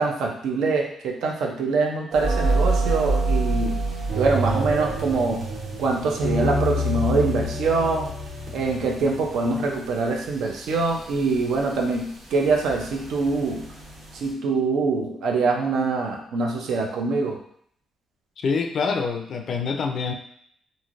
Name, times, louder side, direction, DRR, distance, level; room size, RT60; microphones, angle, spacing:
voice 1, 0.0-3.7 4.1-5.4 5.8-8.1 8.5-13.6 14.1-17.4, right 3 dB, 75° right, 1 dB, 0.5 m, -24 dB
sound 1, 2.1-14.3, right 1 dB, 45° right, 0.9 m, -27 dB
voice 2, 18.4-20.1, left 5 dB, 50° left, 4 dB, 0.4 m, -26 dB
3.1 x 2.6 x 2.5 m, 0.65 s
cardioid pair, 150°, 0 cm